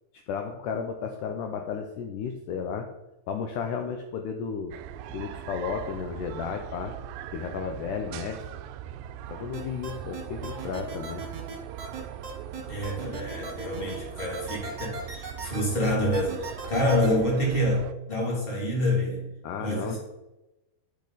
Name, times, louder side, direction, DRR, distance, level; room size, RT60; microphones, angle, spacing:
voice 1, 0.3-2.9 3.3-4.7 5.1-6.9 7.3-8.4 9.3-11.2 19.4-20.0, left 6 dB, 80° left, 4 dB, 1.9 m, -33 dB
sound 1, 4.7-17.9, right 11 dB, 85° right, 2.3 m, -40 dB
sound 2, 9.5-17.1, right 4 dB, 40° right, 1.7 m, -38 dB
voice 2, 12.7-19.2 19.6-20.0, left 1 dB, 15° left, -4 dB, 2.2 m, -27 dB
10.5 x 5.2 x 4.0 m, 1.0 s
omnidirectional pair, 4.3 m